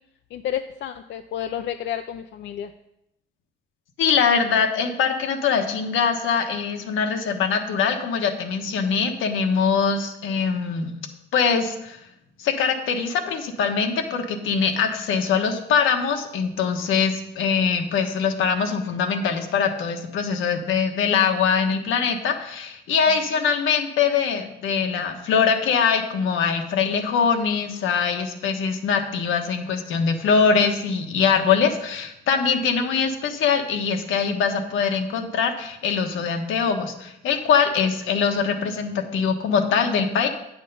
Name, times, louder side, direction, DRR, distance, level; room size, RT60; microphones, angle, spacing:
voice 1, 0.3-2.7 23.4-23.5, left 10 dB, 65° left, 8 dB, 0.5 m, -30 dB
voice 2, 4.0-10.9 11.3-12.0 12.4-40.3, left 6 dB, 85° left, 5 dB, 1.2 m, -22 dB
8.9 x 6.5 x 5.3 m, 0.84 s
cardioid pair, 90°, 20 cm